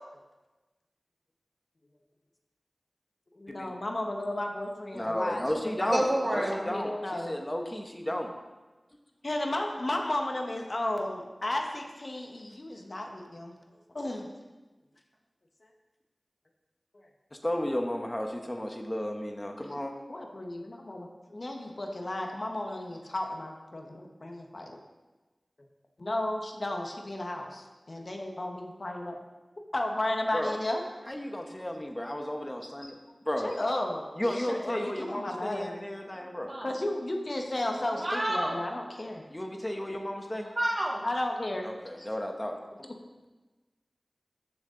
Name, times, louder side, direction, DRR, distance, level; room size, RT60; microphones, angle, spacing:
voice 1, 3.3-5.9 6.3-7.3 9.2-13.6 13.9-14.3 20.1-24.8 26.0-29.2 29.7-30.8 33.4-35.8 36.6-39.2 41.0-41.7, left 1 dB, 55° left, 2 dB, 1.2 m, -33 dB
voice 2, 4.9-8.3 17.4-19.9 30.3-30.6 31.1-33.0 33.3-33.6 34.2-36.5 39.3-40.5 41.6-42.5, left 1 dB, 20° left, 3 dB, 1.0 m, -33 dB
voice 3, 5.9-6.6 36.4-36.7 37.9-38.6 40.6-41.0, right 1 dB, 45° right, -1 dB, 1.8 m, -29 dB
13.5 x 6.6 x 3.8 m, 1.2 s
wide cardioid pair, 60°, 0 cm